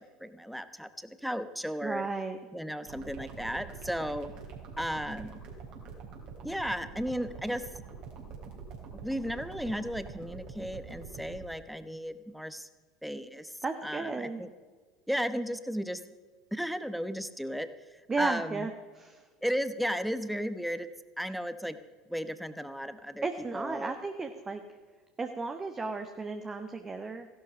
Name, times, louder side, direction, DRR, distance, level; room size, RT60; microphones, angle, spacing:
voice 1, 0.0-2.1 2.5-4.3 4.8-5.4 6.4-7.7 9.0-12.7 13.0-13.5 13.8-14.5 15.1-16.0 16.5-18.7 19.4-20.9 21.2-21.8 22.1-23.2 23.5-23.9, equal, ahead, 12 dB, 1.1 m, -34 dB
voice 2, 1.8-2.4 13.6-14.4 18.1-19.3 23.2-24.6 25.2-27.3, right 3 dB, 20° right, 6 dB, 1.2 m, -34 dB
sound 1, 2.9-11.4, right 5 dB, 55° right, 3.8 m, -45 dB
16.0 x 12.0 x 5.4 m, 1.4 s
hypercardioid pair, 75°, 2 cm